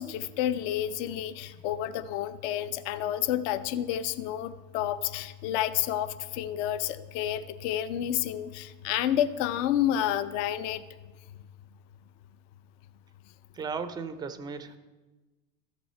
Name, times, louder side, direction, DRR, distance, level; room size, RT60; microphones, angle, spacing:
voice 1, 0.0-10.8, left 11 dB, 60° left, 14 dB, 0.6 m, -30 dB
voice 2, 13.5-14.8, right 5 dB, 10° right, 11 dB, 0.3 m, -36 dB
13.5 x 6.1 x 4.3 m, 1.2 s
hypercardioid pair, 110°, 43 cm